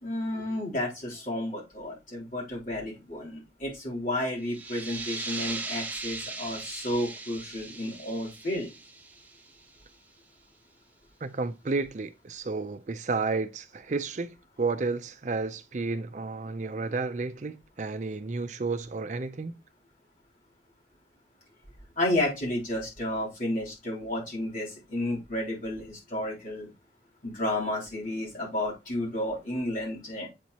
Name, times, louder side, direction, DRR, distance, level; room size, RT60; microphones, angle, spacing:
voice 1, 0.0-8.7 22.0-26.7 27.2-30.3, left 1 dB, 50° left, 3.4 m, -32 dB
sound 1, 4.4-9.8, right 3 dB, 10° right, 0.7 m, -39 dB
voice 2, 11.2-19.6, right 3 dB, 45° right, 0.5 m, -32 dB
8.1 x 4.4 x 2.9 m
head